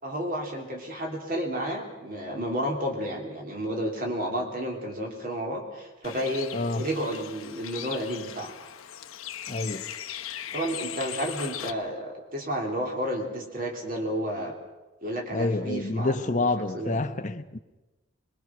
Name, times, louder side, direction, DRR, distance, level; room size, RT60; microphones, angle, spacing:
voice 1, 0.0-6.5 6.8-8.5 10.5-14.5 15.0-17.0, equal, 40° right, 3.4 m, -31 dB
Bird, 6.0-11.7, left 11 dB, 80° left, 1.0 m, -39 dB
voice 2, 6.5-6.8 9.5-9.9 15.3-17.6, left 2 dB, 35° left, 0.9 m, -28 dB
22.5 x 22.0 x 6.0 m
head